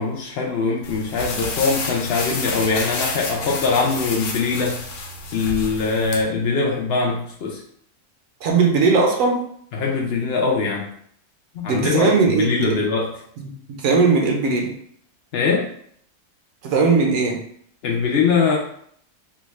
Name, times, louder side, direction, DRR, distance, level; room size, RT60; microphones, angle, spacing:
voice 1, 0.0-4.8 5.3-7.6 9.7-10.9 11.5-13.2 15.3-15.7 17.8-18.6, left 4 dB, 85° left, -1 dB, 0.5 m, -22 dB
sound 1, 0.8-6.2, left 3 dB, 65° left, 0.8 m, -30 dB
voice 2, 8.4-9.5 11.7-12.5 13.4-14.8 16.6-17.4, right 4 dB, 65° right, 1 dB, 1.0 m, -19 dB
3.5 x 2.2 x 3.1 m, 0.64 s
omnidirectional pair, 1.6 m